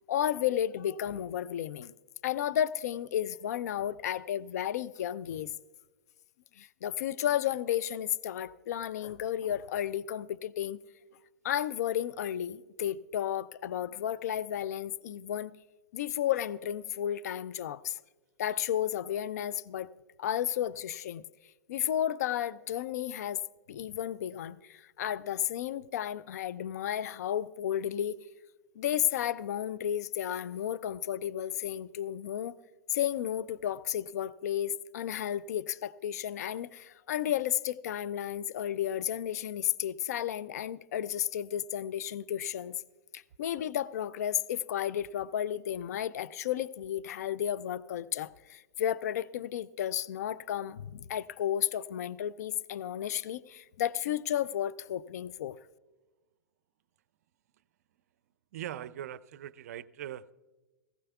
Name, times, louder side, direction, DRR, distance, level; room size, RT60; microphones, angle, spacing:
voice 1, 0.1-1.9 2.2-5.5 6.6-10.8 11.4-15.5 15.9-18.0 18.4-19.9 20.2-21.2 21.7-23.4 23.7-28.2 28.8-32.6 32.9-42.8 43.1-55.6, left 10 dB, 65° left, 0.4 m, -33 dB
voice 2, 58.5-60.3, right 11 dB, 60° right, 0.4 m, -41 dB
18.0 x 15.5 x 2.3 m
hypercardioid pair, 105°, 9 cm